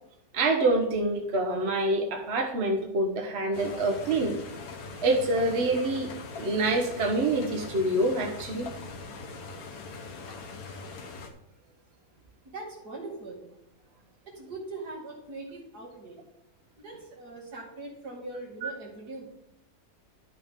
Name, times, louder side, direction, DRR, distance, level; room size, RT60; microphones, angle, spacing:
voice 1, 0.3-4.4 5.0-8.7 18.6-18.7, right 2 dB, 45° right, 3 dB, 1.4 m, -26 dB
sound 1, 3.5-11.3, left 3 dB, 65° left, 1.6 m, -41 dB
voice 2, 12.4-13.4 14.3-16.2 16.8-19.3, right 2 dB, 90° right, -2 dB, 3.0 m, -41 dB
12.0 x 6.4 x 3.7 m, 0.85 s
omnidirectional pair, 1.7 m